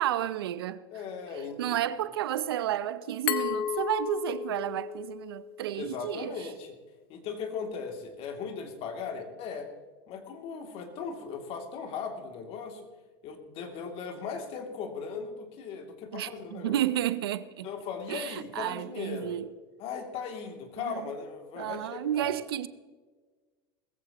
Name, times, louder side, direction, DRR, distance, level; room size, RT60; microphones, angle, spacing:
voice 1, 0.0-0.8 1.6-6.5 16.1-17.7 18.1-19.5 20.8-21.1 21.5-22.7, right 12 dB, 85° right, 0.7 m, -31 dB
voice 2, 0.9-1.8 5.7-6.7 7.1-9.7 10.1-12.8 13.2-16.8 17.6-19.4 19.8-22.3, left 5 dB, 50° left, 2.7 m, -38 dB
Glass, 3.3-6.1, left 9 dB, 80° left, 0.9 m, -34 dB
19.5 x 15.0 x 3.0 m
hypercardioid pair, 100°, 12 cm